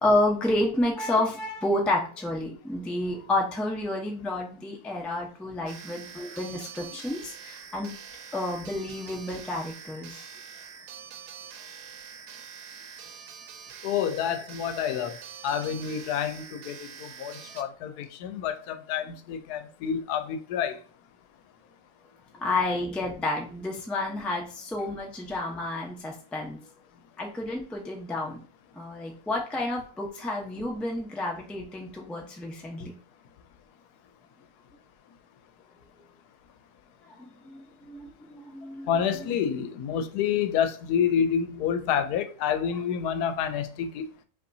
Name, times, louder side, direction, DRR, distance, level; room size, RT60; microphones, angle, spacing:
voice 1, 0.0-8.0 8.3-10.3 22.4-26.6 27.2-28.4 28.8-33.0 37.2-38.9, left 2 dB, ahead, 0.4 m, -30 dB
sound 1, 5.7-17.6, right 7 dB, 85° right, 1.1 m, -45 dB
voice 2, 13.8-15.2 15.4-20.8 38.9-44.1, left 8 dB, 85° left, 1.1 m, -28 dB
5.4 x 2.9 x 2.6 m
omnidirectional pair, 1.6 m